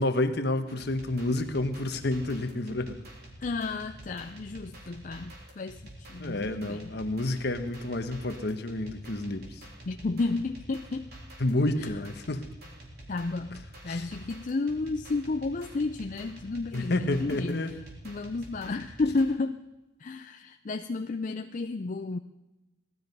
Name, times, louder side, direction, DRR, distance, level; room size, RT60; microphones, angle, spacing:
voice 1, 0.0-3.0 6.2-9.6 11.4-12.5 13.9-14.0 16.7-17.8, left 2 dB, 60° left, 9 dB, 1.1 m, -29 dB
sound 1, 0.7-19.2, right 1 dB, 55° right, 3.7 m, -47 dB
voice 2, 3.4-6.9 9.8-11.1 11.8-12.0 13.1-17.7 18.0-19.6 20.0-22.2, left 3 dB, 40° left, 7 dB, 0.5 m, -32 dB
18.5 x 12.5 x 5.4 m, 1.0 s
head